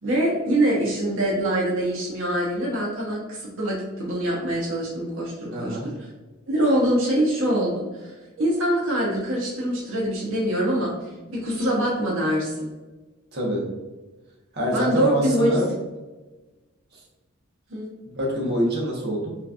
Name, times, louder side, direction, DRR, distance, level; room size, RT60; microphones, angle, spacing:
voice 1, 0.0-5.9 6.5-12.7 14.7-15.6 17.7-17.9, right 1 dB, 70° right, -4 dB, 1.1 m, -24 dB
voice 2, 5.5-5.9 13.3-13.7 14.5-15.7 18.1-19.4, equal, 50° right, -3 dB, 1.3 m, -25 dB
5.6 x 3.3 x 2.5 m, 1.2 s
head